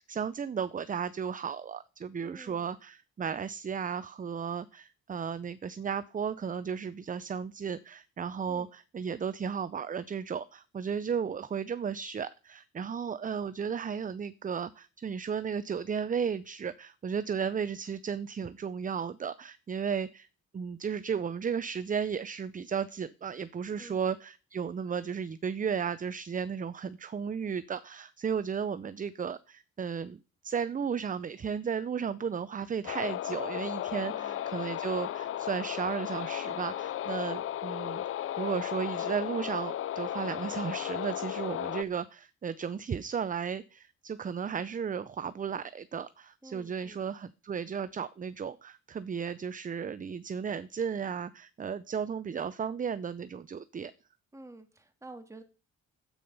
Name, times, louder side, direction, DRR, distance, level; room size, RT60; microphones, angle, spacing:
voice 1, 0.0-20.3 20.5-30.2 30.4-38.0 38.4-53.9, right 7 dB, 25° right, 15 dB, 0.5 m, -34 dB
voice 2, 2.2-2.7 8.5-8.7 23.8-24.0 33.9-34.4 46.4-47.0 54.3-55.4, right 2 dB, 10° right, 6 dB, 2.1 m, -50 dB
sound 1, 32.9-41.8, left 11 dB, 45° left, 0.4 m, -35 dB
10.0 x 8.7 x 5.4 m, 0.35 s
cardioid pair, 90°, 30 cm